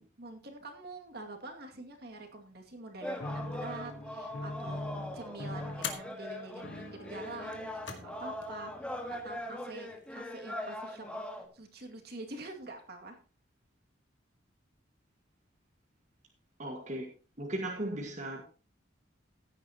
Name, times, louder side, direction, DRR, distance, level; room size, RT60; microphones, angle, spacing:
voice 1, 0.2-4.8 5.1-8.7 9.2-13.2, right 2 dB, 55° right, 3 dB, 2.3 m, -46 dB
sound 1, 3.0-11.5, left 1 dB, 5° left, 1.6 m, -41 dB
sound 2, 3.2-9.7, left 1 dB, 55° left, 1.2 m, -44 dB
sound 3, 4.3-4.6 5.8-6.2 7.4-8.1 8.4-8.5 9.6-10.1, left 7 dB, 70° left, 2.0 m, -42 dB
voice 2, 16.6-17.1 17.4-18.4, right 1 dB, 40° right, 0 dB, 1.7 m, -36 dB
15.5 x 10.0 x 3.0 m, 0.35 s
head